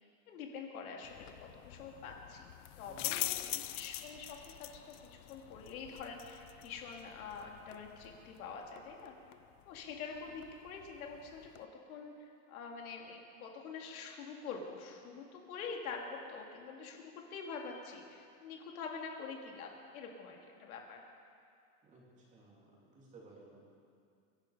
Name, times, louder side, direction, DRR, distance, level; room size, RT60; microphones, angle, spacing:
voice 1, 0.3-2.5 2.8-9.1 9.7-21.0, left 5 dB, 80° left, 1 dB, 2.6 m, -46 dB
sound 1, 1.0-11.6, left 16 dB, 60° left, 0.7 m, -45 dB
voice 2, 2.8-3.5 21.8-22.6 22.9-23.7, right 2 dB, 15° right, -4 dB, 3.1 m, -57 dB
23.5 x 11.0 x 5.0 m, 2.3 s
supercardioid pair, 165°, 42 cm